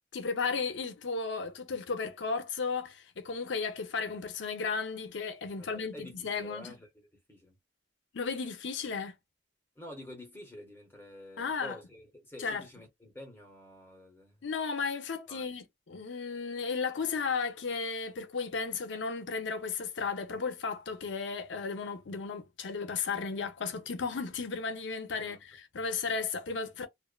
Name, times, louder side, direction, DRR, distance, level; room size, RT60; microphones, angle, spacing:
voice 1, 0.1-6.7 8.1-9.2 11.4-11.8 12.4-12.6 14.4-26.9, left 5 dB, 85° left, 0.6 m, -34 dB
voice 2, 5.6-7.6 9.8-14.5 15.3-15.5 25.1-25.4 25.8-26.0, left 1 dB, 15° left, 1.0 m, -49 dB
2.5 x 2.4 x 2.2 m
head